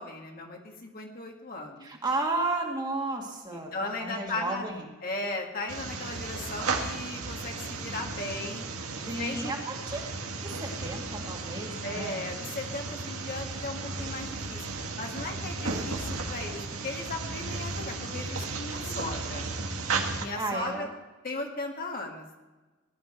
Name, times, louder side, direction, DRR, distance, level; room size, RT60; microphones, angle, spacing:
voice 1, 0.0-1.9 3.5-4.7 5.0-8.7 9.2-9.5 11.8-14.7 15.0-19.5 20.2-20.9 21.2-22.4, left 2 dB, 40° left, 1 dB, 1.8 m, -37 dB
voice 2, 1.8-4.9 9.1-10.0 10.4-12.3 18.8-19.1 20.4-20.9, right 2 dB, 20° right, 0 dB, 2.0 m, -33 dB
sound 1, 5.7-20.3, right 3 dB, 80° right, 1.8 m, -34 dB
18.5 x 11.0 x 4.5 m, 1.2 s
head